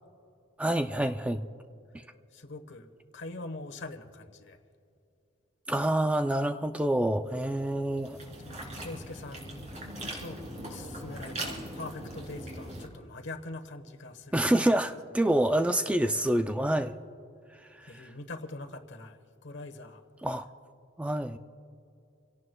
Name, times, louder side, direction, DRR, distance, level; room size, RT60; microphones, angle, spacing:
voice 1, 0.6-1.5 5.7-8.2 14.3-16.9 20.2-20.5 21.0-21.4, right 1 dB, 5° right, 7 dB, 0.3 m, -27 dB
voice 2, 2.3-2.9 3.1-4.6 8.4-9.7 10.2-14.7 17.9-20.0, left 2 dB, 60° left, 7 dB, 1.2 m, -43 dB
sound 1, 7.4-12.9, right 1 dB, 35° right, 3.2 m, -40 dB
27.5 x 17.5 x 2.3 m, 2.6 s
head